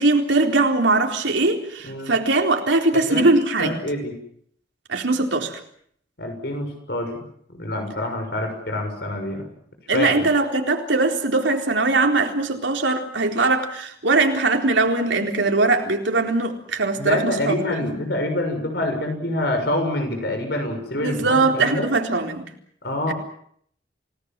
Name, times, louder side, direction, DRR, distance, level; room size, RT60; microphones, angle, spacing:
voice 1, 0.0-3.7 4.9-5.6 9.9-17.6 17.8-17.9 20.9-22.5 23.1-23.2, right 3 dB, 85° right, 3 dB, 4.0 m, -21 dB
voice 2, 3.6-4.1 6.2-7.1 7.5-9.4 9.9-10.3 17.0-21.9 22.8-23.1, left 1 dB, 60° left, 4 dB, 6.6 m, -26 dB
29.5 x 18.5 x 7.6 m, 0.65 s
head